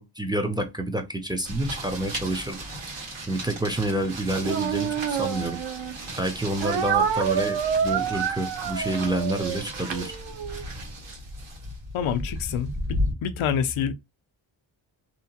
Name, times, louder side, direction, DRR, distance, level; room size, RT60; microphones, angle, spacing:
voice 1, 0.0-2.6 3.3-5.6 6.2-10.1, right 1 dB, 10° right, 0.4 m, -28 dB
sound 1, 1.5-13.1, equal, 85° right, 1.5 m, -35 dB
Speech, 4.4-6.0 6.6-10.6, right 7 dB, 65° right, 0.6 m, -28 dB
voice 2, 11.9-13.9, left 7 dB, 85° left, 0.6 m, -27 dB
2.8 x 2.1 x 2.8 m
cardioid pair, 80°, 47 cm